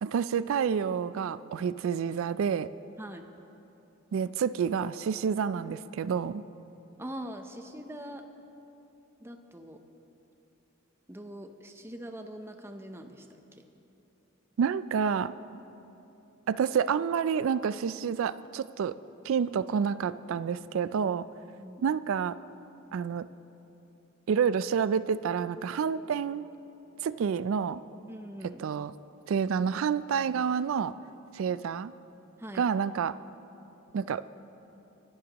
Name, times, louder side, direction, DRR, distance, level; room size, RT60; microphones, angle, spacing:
voice 1, 0.0-2.7 4.1-6.4 14.6-15.3 16.5-18.9 19.2-21.3 21.8-22.4 22.9-23.3 24.3-26.4 27.0-27.8 28.6-28.9 29.3-30.9 31.3-31.9 32.6-33.1 33.9-34.3, right 7 dB, 75° right, 15 dB, 0.3 m, -28 dB
voice 2, 3.0-3.3 7.0-8.2 9.2-9.8 11.1-13.3 13.5-13.7 21.6-21.8 28.1-28.6 32.4-32.7, right 1 dB, 10° right, 6 dB, 0.6 m, -42 dB
24.5 x 11.0 x 3.0 m, 3.0 s
head